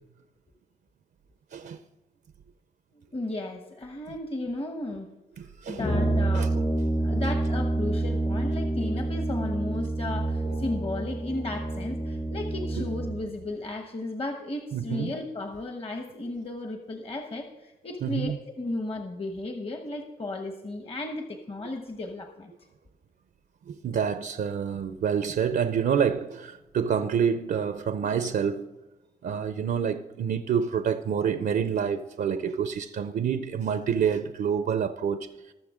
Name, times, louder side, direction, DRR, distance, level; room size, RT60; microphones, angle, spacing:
voice 1, 2.9-5.1 5.7-6.7 7.0-22.5, left 2 dB, 35° left, 1.1 m, -34 dB
voice 2, 5.4-5.9 6.3-6.6 10.5-10.6 14.7-15.1 18.0-18.4 23.7-28.7 29.2-35.5, right 7 dB, 70° right, 0.6 m, -28 dB
Brass instrument, 5.8-13.2, right 2 dB, 85° left, 3.3 m, -28 dB
20.0 x 6.8 x 3.7 m
cardioid pair, 70°, 17 cm